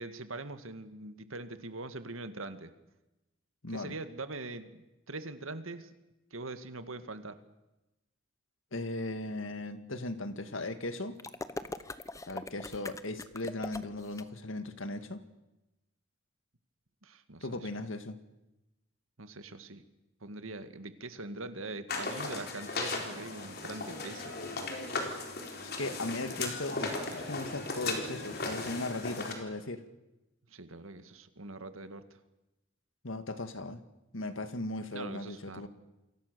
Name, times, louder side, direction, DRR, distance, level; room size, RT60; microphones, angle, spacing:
voice 1, 0.0-2.7 3.7-5.9 6.3-7.4 17.0-17.7 19.2-19.8 20.2-24.4 30.5-32.2 34.9-35.7, right 2 dB, 85° right, 10 dB, 2.0 m, -43 dB
voice 2, 3.6-4.0 8.7-11.2 12.3-15.2 17.4-18.2 25.6-29.8 33.0-33.8 34.1-35.7, left 2 dB, 75° left, 10 dB, 2.0 m, -37 dB
sound 1, 11.2-14.2, left 2 dB, 15° left, 0.9 m, -41 dB
sound 2, 21.9-29.3, left 3 dB, 50° left, 4.2 m, -37 dB
28.5 x 22.5 x 6.9 m, 0.99 s
head